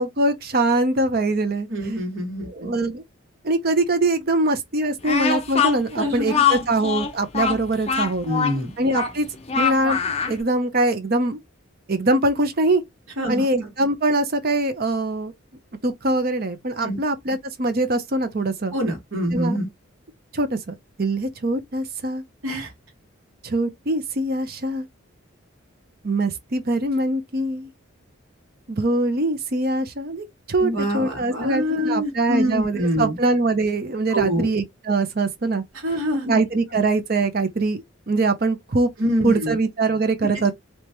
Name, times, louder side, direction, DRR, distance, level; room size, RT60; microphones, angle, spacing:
voice 1, 0.0-1.9 2.4-3.0 3.4-8.3 8.8-9.3 9.5-11.4 11.9-12.8 13.3-15.3 15.8-18.7 19.3-19.6 20.3-22.2 23.4-24.9 26.0-27.7 28.7-35.6 36.3-38.9 39.2-40.5, right 2 dB, 45° right, 0.7 m, -23 dB
voice 2, 1.7-2.7 6.0-6.4 8.2-8.7 13.2-13.4 16.8-17.0 18.7-19.7 22.4-22.7 30.6-33.2 34.1-34.5 35.8-36.4 39.0-39.5 40.3-40.5, equal, 75° right, 1.7 m, -25 dB
Speech, 5.0-10.4, left 6 dB, 30° left, 0.6 m, -23 dB
3.4 x 2.9 x 2.9 m
head